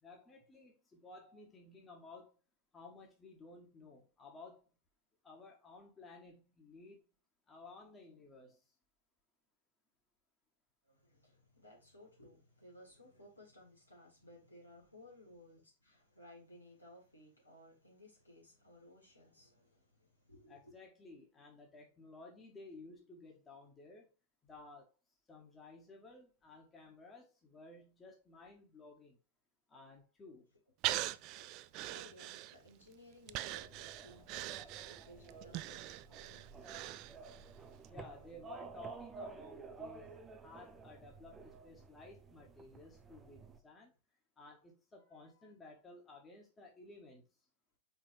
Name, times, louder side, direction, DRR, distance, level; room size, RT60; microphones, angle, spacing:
voice 1, 0.0-2.3 2.7-4.7 5.2-7.1 7.5-8.7 20.5-24.1 24.4-24.9 25.3-29.2 29.7-30.5 37.9-40.1 40.4-43.9 44.4-47.3, left 3 dB, 20° left, 1.8 m, -55 dB
voice 2, 10.8-20.7 30.9-37.9 45.3-45.5, left 1 dB, 85° left, 3.0 m, -60 dB
Breathing, 30.8-32.8 33.3-37.5 37.8-37.9, right 15 dB, 40° right, 0.3 m, -41 dB
sound 1, 33.3-43.6, right 4 dB, 20° right, 0.7 m, -52 dB
5.2 x 4.1 x 4.6 m
figure-of-eight pair, 90°, 0 cm